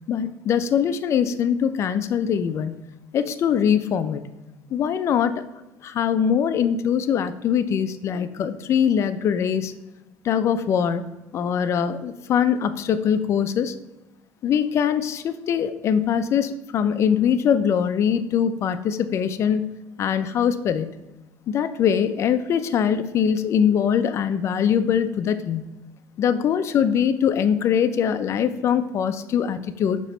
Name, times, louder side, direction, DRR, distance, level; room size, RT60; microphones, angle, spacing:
voice 1, 0.0-2.8 3.1-4.2 4.7-5.4 5.8-9.7 10.2-13.7 14.4-19.6 20.0-20.9 21.5-25.7 26.2-30.0, left 8 dB, 50° left, 11 dB, 0.5 m, -22 dB
5.8 x 3.0 x 5.4 m, 1.0 s
supercardioid pair, 90°, 6 cm